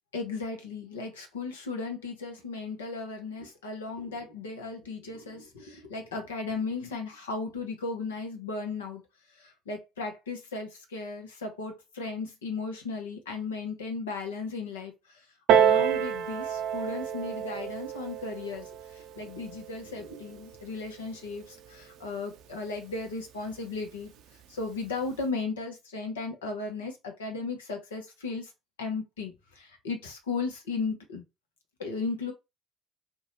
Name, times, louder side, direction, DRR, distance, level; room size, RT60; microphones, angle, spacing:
voice 1, 0.1-9.0 9.3-24.1 24.5-28.5 28.8-31.2 31.8-32.3, left 4 dB, 85° left, 0.7 m, -36 dB
Piano, 15.5-20.7 21.5-21.6, right 8 dB, 65° right, 0.4 m, -28 dB
2.7 x 2.2 x 4.1 m
hypercardioid pair, 55°, 0 cm